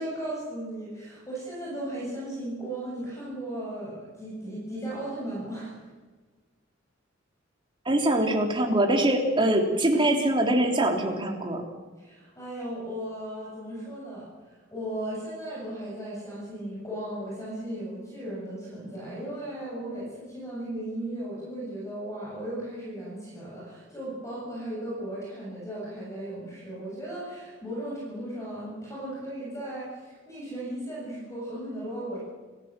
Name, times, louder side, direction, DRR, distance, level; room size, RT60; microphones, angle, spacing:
voice 1, 0.0-5.7 12.0-14.3 14.7-32.2, right 1 dB, 15° left, -6 dB, 7.6 m, -36 dB
voice 2, 7.9-11.6, right 1 dB, 25° right, 1 dB, 3.4 m, -23 dB
29.0 x 16.0 x 7.6 m, 1.3 s
head